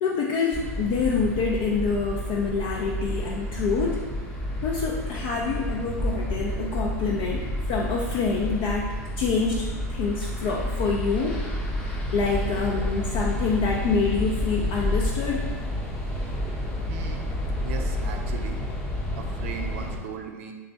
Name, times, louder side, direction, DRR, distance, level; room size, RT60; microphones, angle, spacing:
voice 1, 0.0-4.0 4.6-11.4 12.1-15.5, left 4 dB, 45° left, -3 dB, 0.5 m, -26 dB
sound 1, 0.5-20.0, left 1 dB, 10° left, 0.8 m, -30 dB
voice 2, 16.9-17.3 17.6-18.6 19.2-20.5, right 6 dB, 50° right, 4 dB, 0.5 m, -37 dB
3.4 x 3.2 x 4.1 m, 1.3 s
figure-of-eight pair, 95°, 9 cm